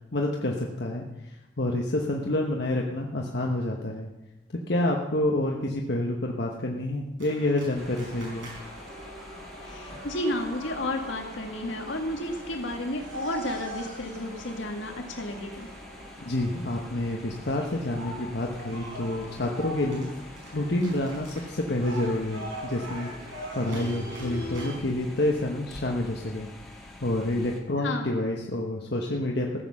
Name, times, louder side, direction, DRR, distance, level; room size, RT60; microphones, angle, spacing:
voice 1, 0.1-4.1 4.7-8.5 16.3-20.1 20.5-23.1 23.5-26.5 27.0-29.5, left 1 dB, 60° left, 0 dB, 1.1 m, -28 dB
sound 1, 7.2-24.7, right 1 dB, 80° right, 5.4 m, -41 dB
sound 2, 7.7-27.6, left 1 dB, ahead, 1.7 m, -47 dB
voice 2, 9.6-15.7 27.8-28.1, left 1 dB, 80° left, 3 dB, 1.9 m, -32 dB
15.0 x 7.9 x 6.3 m, 0.99 s
head